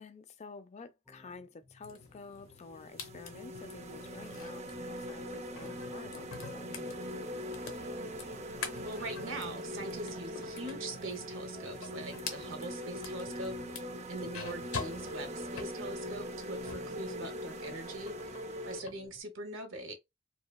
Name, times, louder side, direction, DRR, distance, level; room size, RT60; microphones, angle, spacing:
voice 1, 0.0-7.3, left 4 dB, 35° left, 0.3 m, -51 dB
sound 1, 1.1-19.2, left 1 dB, 5° left, 0.7 m, -60 dB
sound 2, 1.8-17.0 17.3-19.0, left 5 dB, 85° left, 0.7 m, -47 dB
sound 3, 1.9-2.0 2.6-18.8, equal, 35° right, 0.4 m, -41 dB
voice 2, 8.8-13.8 14.1-20.0, right 2 dB, 70° right, 0.8 m, -42 dB
2.9 x 2.1 x 2.2 m
head